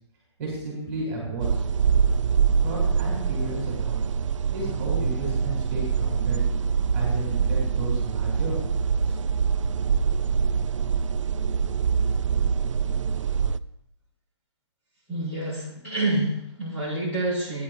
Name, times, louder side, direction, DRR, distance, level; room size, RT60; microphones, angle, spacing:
voice 1, 0.4-1.6 2.6-4.0 4.5-6.4 6.9-9.1, right 2 dB, 30° right, -4 dB, 3.2 m, -33 dB
sound 1, 1.4-13.6, right 6 dB, 85° right, 0.4 m, -24 dB
voice 2, 15.1-17.6, right 2 dB, 10° left, -10 dB, 4.6 m, -28 dB
16.0 x 10.0 x 2.5 m, 0.76 s
hypercardioid pair, 165°, 16 cm